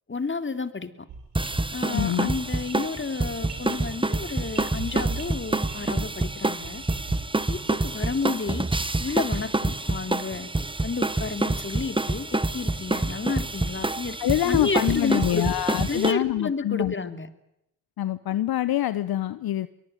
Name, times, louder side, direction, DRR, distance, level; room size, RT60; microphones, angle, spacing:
voice 1, 0.1-1.1 1.7-6.8 7.5-8.7 9.0-10.5 10.8-14.2 14.4-15.5 15.9-17.3, left 4 dB, 30° left, 11 dB, 2.8 m, -31 dB
sound 1, 1.1-7.8, right 4 dB, 75° right, 4.6 m, -42 dB
sound 2, 1.3-16.1, right 2 dB, 10° right, 1.4 m, -27 dB
voice 2, 1.9-2.3 14.2-16.9 18.0-19.7, left 13 dB, 60° left, 15 dB, 1.0 m, -25 dB
sound 3, 3.3-16.2, right 4 dB, 45° right, 5.5 m, -56 dB
23.5 x 22.0 x 9.2 m, 0.82 s
hypercardioid pair, 45°, 40 cm